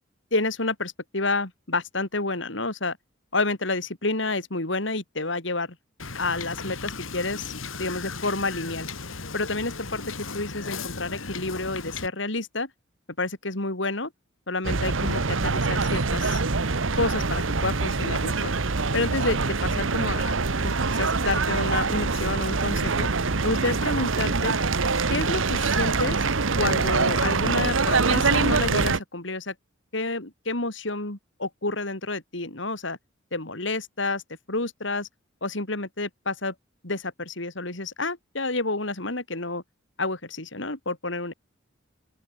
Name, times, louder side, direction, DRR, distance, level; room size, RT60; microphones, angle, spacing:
voice 1, 0.3-3.0 3.3-5.8 6.2-7.5 7.8-8.9 9.3-12.7 13.2-14.1 14.5-16.4 17.0-18.5 18.9-20.4 20.6-23.1 23.4-24.6 25.1-26.3 26.6-29.5 29.9-33.0 33.3-34.2 34.5-35.1 35.4-36.5 36.8-39.6 40.0-41.3, left 2 dB, 65° left, 3.7 m, -29 dB
Wind / Boat Water vehicle, 6.0-12.1, left 4 dB, 85° left, 2.6 m, -36 dB
sound 1, 14.6-29.0, right 4 dB, 75° right, 1.3 m, -24 dB
open air
head